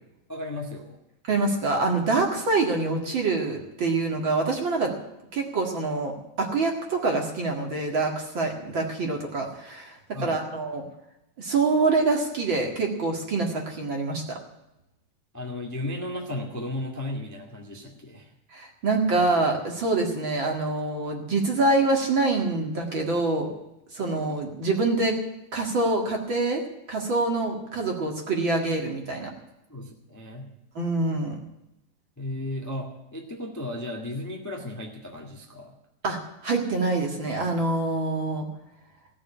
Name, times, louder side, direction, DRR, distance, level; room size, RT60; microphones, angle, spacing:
voice 1, 0.3-1.0 10.1-10.4 15.3-18.3 19.1-19.3 24.0-24.1 29.7-30.5 32.2-35.7, left 1 dB, 10° left, 0 dB, 1.4 m, -35 dB
voice 2, 1.3-4.9 5.3-6.1 6.4-10.0 10.2-10.8 11.4-14.4 18.5-23.5 23.9-25.2 25.5-26.6 26.9-29.3 30.8-31.4 36.0-38.5, right 3 dB, 45° right, 1 dB, 2.3 m, -25 dB
16.5 x 7.0 x 9.8 m, 0.88 s
omnidirectional pair, 3.4 m